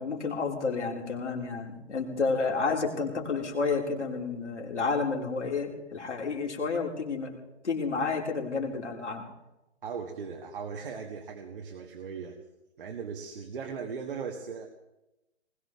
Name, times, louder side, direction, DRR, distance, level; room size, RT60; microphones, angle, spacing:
voice 1, 0.0-7.4 7.6-9.3, left 4 dB, 85° left, 0 dB, 3.5 m, -30 dB
voice 2, 9.8-12.4 12.8-14.7, right 6 dB, 50° right, 3 dB, 1.7 m, -38 dB
20.0 x 18.0 x 3.6 m, 0.94 s
hypercardioid pair, 155°, 34 cm